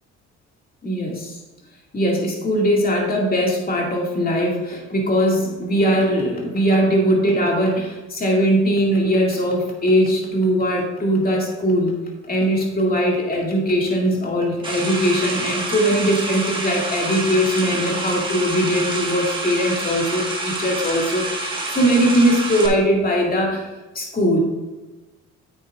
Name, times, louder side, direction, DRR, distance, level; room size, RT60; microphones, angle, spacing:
voice 1, 0.8-1.3 1.9-11.9 12.3-23.6 23.9-24.4, equal, 30° left, -1 dB, 2.4 m, -20 dB
sound 1, 14.6-22.7, right 2 dB, 15° right, 1.8 m, -27 dB
8.9 x 8.8 x 2.6 m, 1.2 s
cardioid pair, 90°, 30 cm